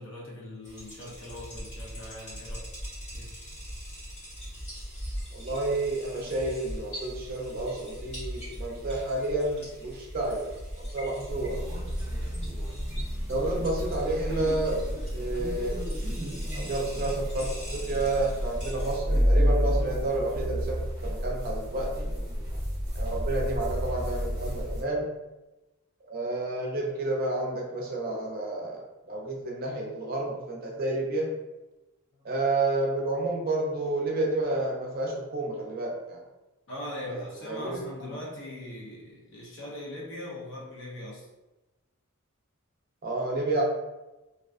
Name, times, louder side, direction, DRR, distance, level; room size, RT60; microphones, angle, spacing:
voice 1, 0.0-2.7 3.1-3.3 13.1-13.3 32.2-32.3 36.7-41.3, left 1 dB, 55° left, -4 dB, 0.6 m, -40 dB
sound 1, 0.6-19.0, equal, 30° left, 1.0 m, -41 dB
voice 2, 5.3-10.5 10.9-11.6 13.3-22.1 23.0-25.1 26.0-28.8 29.1-31.3 32.2-36.2 37.1-37.8 43.0-43.6, right 2 dB, 40° right, -2 dB, 0.5 m, -30 dB
sound 2, 11.3-24.8, equal, 20° right, 0.8 m, -30 dB
2.4 x 2.2 x 2.4 m, 1.1 s
head